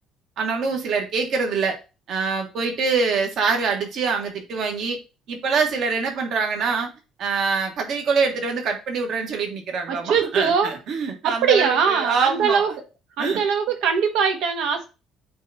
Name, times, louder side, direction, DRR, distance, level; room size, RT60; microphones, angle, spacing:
voice 1, 0.4-1.8 2.1-5.0 5.3-6.9 7.2-12.7 13.2-13.4, right 5 dB, 50° right, 3 dB, 1.5 m, -24 dB
voice 2, 9.9-10.7 11.2-12.7 13.2-14.8, right 6 dB, 75° right, 5 dB, 1.5 m, -21 dB
7.7 x 3.5 x 4.2 m, 0.31 s
cardioid pair, 175°, 0 cm